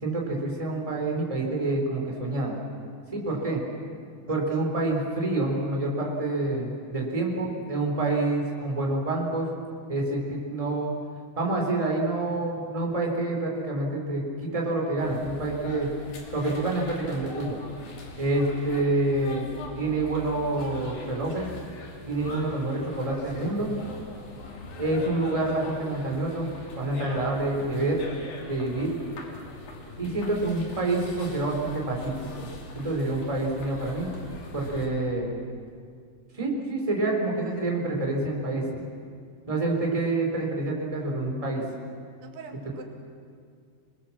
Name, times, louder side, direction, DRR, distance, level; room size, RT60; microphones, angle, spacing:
voice 1, 0.0-2.5 3.1-3.6 4.3-9.5 9.9-10.9 11.4-15.9 16.3-17.6 18.2-19.5 19.8-21.5 22.1-23.7 24.8-26.5 26.8-28.0 28.5-29.0 30.0-32.5 32.8-34.1 34.5-35.3 36.3-38.8 39.5-41.6, right 2 dB, 10° right, -1 dB, 3.6 m, -27 dB
voice 2, 3.1-3.6 4.3-4.7 42.2-42.8, right 6 dB, 80° right, 3 dB, 3.9 m, -47 dB
sound 1, 15.0-34.9, left 2 dB, 60° left, 4.5 m, -41 dB
29.0 x 20.5 x 7.3 m, 2.2 s
omnidirectional pair, 4.6 m